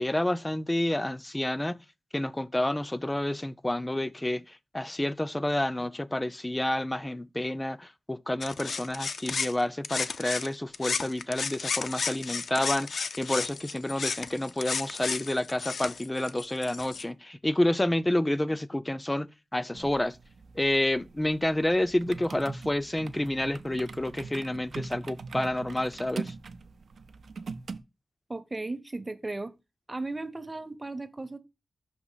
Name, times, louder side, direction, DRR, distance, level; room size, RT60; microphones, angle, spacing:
voice 1, 0.0-1.8 2.1-20.2 20.6-26.3, left 1 dB, 15° left, 0.4 m, -29 dB
sound 1, 8.4-10.5 10.7-17.0, left 5 dB, 70° left, 0.4 m, -33 dB
sound 2, 19.7-27.8, right 4 dB, 75° right, 0.5 m, -42 dB
voice 2, 28.3-29.5 29.9-31.4, right 2 dB, 20° right, 0.8 m, -36 dB
6.1 x 2.9 x 5.5 m
wide cardioid pair, 90°, 0 cm